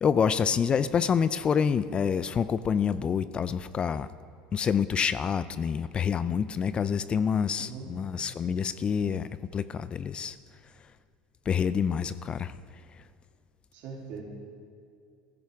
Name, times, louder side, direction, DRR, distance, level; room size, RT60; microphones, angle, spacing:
voice 1, 0.0-4.1 4.5-10.4 11.5-12.5, left 7 dB, 30° left, 15 dB, 0.4 m, -27 dB
voice 2, 13.7-14.2, right 6 dB, 65° right, -2 dB, 3.0 m, -40 dB
14.5 x 12.0 x 3.5 m, 2.4 s
supercardioid pair, 105°, 3 cm